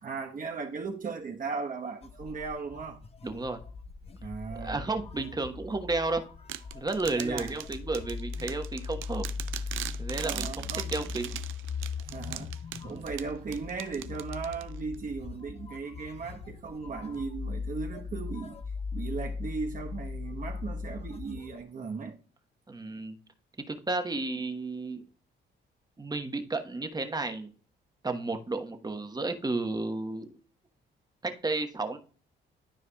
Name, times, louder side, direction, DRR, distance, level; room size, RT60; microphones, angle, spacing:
voice 1, 0.0-3.0 4.2-4.8 7.1-7.5 10.2-11.1 12.1-12.6 12.8-18.6 18.9-22.2, right 4 dB, 40° right, 1.1 m, -37 dB
sound 1, 2.0-21.6, left 5 dB, 30° left, 0.8 m, -39 dB
voice 2, 3.2-3.6 4.5-6.2 6.7-9.2 10.0-11.4 12.8-13.0 22.7-23.1 23.7-25.0 26.0-27.5 28.0-30.3 31.2-32.0, right 3 dB, 20° right, 1.2 m, -32 dB
sound 2, 6.5-15.0, right 13 dB, 85° right, 0.6 m, -40 dB
12.5 x 4.7 x 2.3 m
cardioid pair, 90°, 20 cm